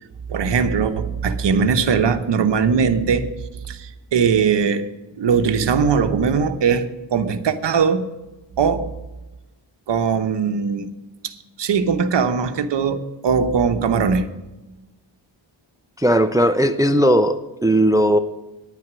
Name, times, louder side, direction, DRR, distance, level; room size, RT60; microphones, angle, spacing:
voice 1, 0.3-3.3 3.7-4.9 5.2-8.1 8.6-8.9 9.9-10.9 11.2-14.3, right 6 dB, 65° right, 8 dB, 1.0 m, -20 dB
voice 2, 16.0-18.2, equal, 10° right, 10 dB, 0.4 m, -17 dB
10.0 x 9.4 x 6.1 m, 1.0 s
wide cardioid pair, 135°, 46 cm